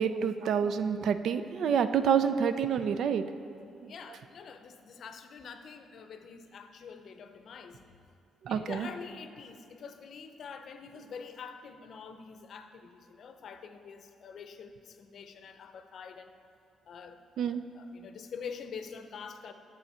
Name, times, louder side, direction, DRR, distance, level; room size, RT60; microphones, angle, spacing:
voice 1, 0.0-3.2 8.4-8.9 17.4-17.6, right 7 dB, 70° right, 11 dB, 0.4 m, -28 dB
voice 2, 3.8-8.0 8.5-16.3 16.8-19.5, left 6 dB, 60° left, 8 dB, 0.6 m, -46 dB
9.7 x 6.9 x 4.3 m, 2.6 s
cardioid pair, 90°, 0 cm